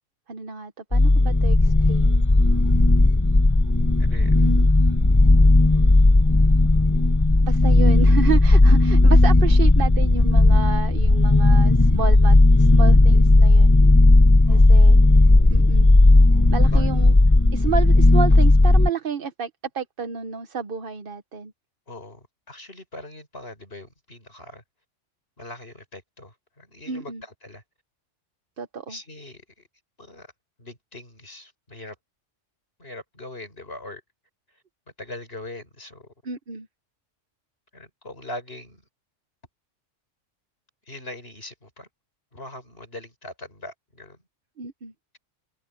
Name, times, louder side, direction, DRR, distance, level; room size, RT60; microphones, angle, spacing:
voice 1, 0.3-2.3 4.3-4.9 7.4-13.8 14.5-15.0 15.5-15.9 16.5-17.2 17.5-21.5 26.9-27.2 28.6-29.0 36.2-36.7 44.6-44.9, right 6 dB, 50° right, 1.1 m, -31 dB
sound 1, 0.9-18.9, left 2 dB, 15° left, 0.8 m, -15 dB
voice 2, 4.0-4.4 14.4-14.7 16.7-16.9 21.9-24.6 25.4-27.6 28.9-29.4 30.0-30.3 30.6-31.9 32.8-34.0 35.0-36.1 37.7-38.8 40.9-41.9 42.3-44.2, left 2 dB, 50° left, 6.7 m, -41 dB
open air
omnidirectional pair, 1.3 m